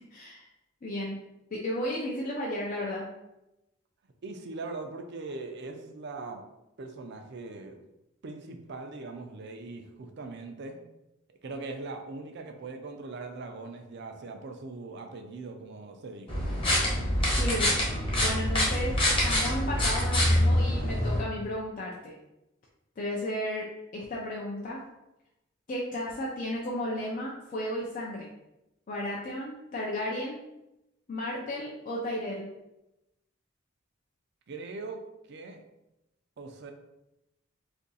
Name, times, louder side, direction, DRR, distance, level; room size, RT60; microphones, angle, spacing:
voice 1, 0.1-0.5 0.8-1.2 1.5-3.1 17.3-17.7 18.2-22.2 23.0-23.7 23.9-24.8 25.7-28.3 28.9-30.4 31.1-32.5, left 1 dB, 40° left, -3 dB, 0.4 m, -34 dB
voice 2, 4.2-6.4 6.8-7.8 8.2-10.8 11.3-16.4 34.5-35.0 35.3-35.6 36.4-36.7, right 3 dB, 60° right, 5 dB, 0.5 m, -40 dB
sound 1, 16.3-21.2, left 1 dB, 25° left, 1.0 m, -25 dB
2.7 x 2.6 x 3.9 m, 0.92 s
head